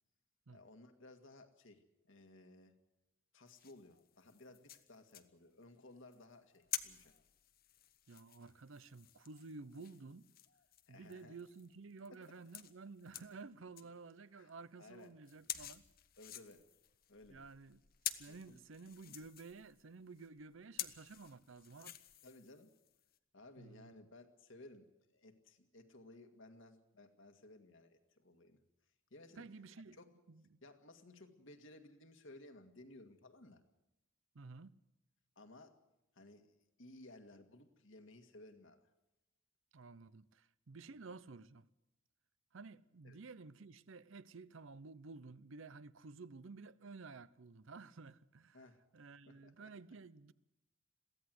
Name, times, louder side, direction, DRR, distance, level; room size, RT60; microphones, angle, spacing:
voice 1, 0.5-2.8 3.3-7.1 10.9-11.4 12.1-12.2 14.0-14.1 14.3-14.5 14.8-15.1 16.2-16.6 17.1-17.4 18.3-18.6 19.1-19.2 22.2-22.7 23.3-28.6 29.1-29.4 29.7-30.1 30.6-33.6 35.4-35.8 36.1-38.9 43.0-43.2 48.5-48.8 49.3-49.7, left 2 dB, 65° left, 2.0 m, -58 dB
sound 1, 3.5-14.0 14.4-14.5 14.8-23.2, left 12 dB, 45° left, 0.9 m, -50 dB
voice 2, 8.1-10.2 10.9-15.8 17.3-17.8 18.2-22.0 23.6-23.9 29.4-30.0 30.3-30.4 34.3-34.7 39.7-41.7 42.5-48.6 48.9-50.3, right 4 dB, 65° right, 0.6 m, -53 dB
22.5 x 15.5 x 7.8 m
head